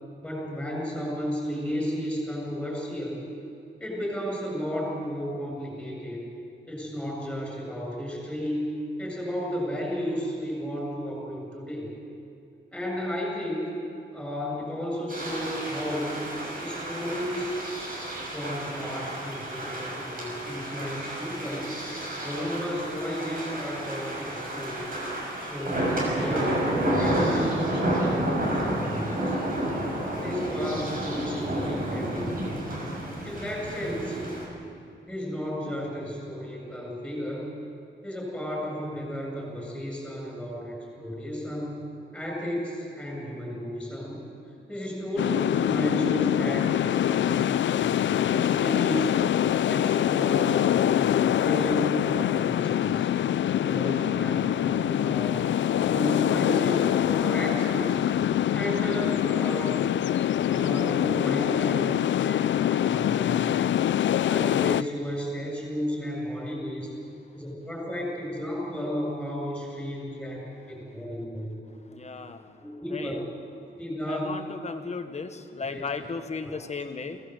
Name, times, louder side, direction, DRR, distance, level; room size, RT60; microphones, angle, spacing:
voice 1, 0.2-3.3 3.8-6.2 6.7-11.9 12.7-13.7 14.1-16.3 16.6-17.6 18.3-21.7 22.2-25.0 25.4-26.7 27.0-29.4 30.2-32.5 33.2-34.2 35.1-37.5 38.0-41.8 42.1-44.3 44.7-49.2 49.7-53.1 53.6-55.4 55.8-58.0 58.5-59.7 60.4-63.7 64.2-66.9 67.3-71.7 72.6-73.1 73.7-74.4 75.6-76.1 76.4-76.5, equal, 5° left, -2 dB, 7.7 m, -33 dB
sound 1, 15.1-34.4, right 1 dB, 45° right, 6.1 m, -30 dB
sound 2, 45.2-64.8, left 11 dB, 70° left, 0.4 m, -24 dB
voice 2, 71.9-72.4 72.9-73.1 74.1-77.2, left 4 dB, 35° left, 8 dB, 1.3 m, -35 dB
23.5 x 17.5 x 8.0 m, 2.5 s
wide cardioid pair, 155°, 20 cm